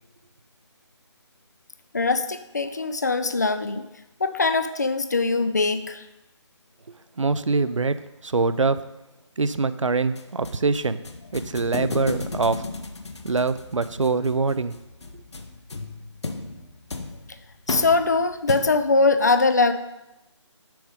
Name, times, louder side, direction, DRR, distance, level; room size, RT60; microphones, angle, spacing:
voice 1, 1.9-3.9 4.2-6.0 17.7-19.7, left 3 dB, 35° left, 11 dB, 0.3 m, -22 dB
voice 2, 7.2-8.9 9.4-11.0 11.3-12.7 13.2-14.8 15.1-15.2, right 4 dB, 80° right, 14 dB, 0.4 m, -24 dB
sound 1, 10.2-19.0, left 3 dB, 60° left, 0.7 m, -35 dB
5.9 x 5.1 x 5.0 m, 0.93 s
figure-of-eight pair, 155°, 16 cm